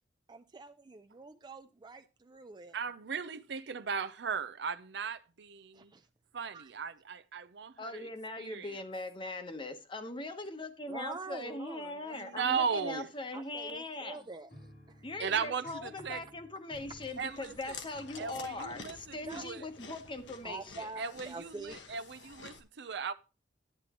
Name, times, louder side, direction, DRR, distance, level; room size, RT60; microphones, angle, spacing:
voice 1, 0.3-2.8 5.7-6.1 6.5-6.7 10.9-12.4 13.3-14.5 14.9-15.0 19.2-19.5 20.4-21.8, right 3 dB, 25° right, 0.5 m, -46 dB
voice 2, 2.7-5.9 6.3-8.1 8.4-8.8 12.1-13.1 15.2-16.2 17.2-17.8 18.2-19.7 21.0-23.1, right 6 dB, 70° right, 0.6 m, -37 dB
voice 3, 7.8-14.2 15.0-20.9, left 2 dB, 30° left, 1.0 m, -41 dB
sound 1, 14.5-21.0, equal, 75° left, 3.0 m, -57 dB
Chewing mastication, 16.7-22.6, left 5 dB, 90° left, 1.1 m, -50 dB
11.0 x 8.5 x 3.0 m
head